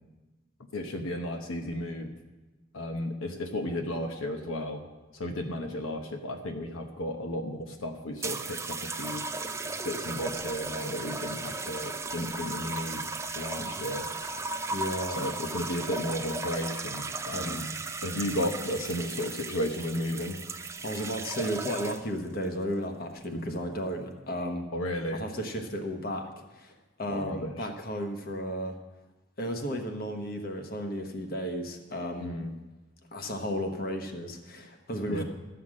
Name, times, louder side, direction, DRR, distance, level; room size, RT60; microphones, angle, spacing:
voice 1, 0.7-2.1 2.7-4.8 5.1-9.3 9.8-13.0 13.3-14.1 15.1-17.7 18.0-20.4 23.3-23.6 24.7-25.2 27.1-27.7 32.2-32.5 35.1-35.2, left 1 dB, 85° left, 4 dB, 1.0 m, -34 dB
sound 1, 8.2-22.2 23.1-23.4, right 3 dB, 15° right, 0.4 m, -36 dB
voice 2, 14.7-15.2 17.3-17.6 20.8-24.6 25.1-28.8 29.4-32.3 33.1-35.2, equal, 50° left, 4 dB, 1.2 m, -34 dB
13.0 x 5.8 x 7.5 m, 1.1 s
head